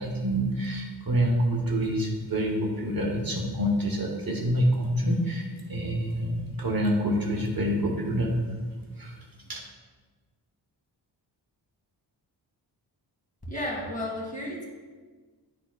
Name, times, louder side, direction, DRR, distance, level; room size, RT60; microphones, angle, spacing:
voice 1, 0.0-8.3 9.0-9.2 9.5-9.6, equal, 50° right, 0 dB, 1.1 m, -27 dB
voice 2, 13.4-14.6, left 1 dB, 20° left, -3 dB, 1.8 m, -33 dB
11.0 x 4.1 x 2.3 m, 1.4 s
wide cardioid pair, 100°, 44 cm